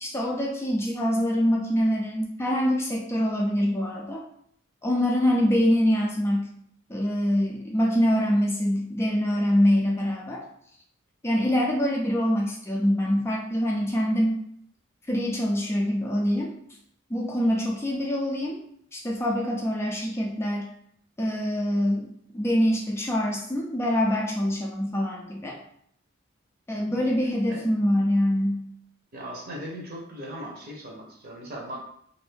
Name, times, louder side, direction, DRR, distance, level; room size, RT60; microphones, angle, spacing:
voice 1, 0.0-4.2 4.8-6.5 6.9-10.5 11.2-14.4 15.1-16.6 17.1-18.6 18.9-20.7 21.2-25.6 26.7-28.6, equal, 15° left, -2 dB, 0.4 m, -24 dB
voice 2, 29.1-31.8, equal, 50° right, -2 dB, 0.9 m, -38 dB
2.6 x 2.5 x 3.4 m, 0.66 s
head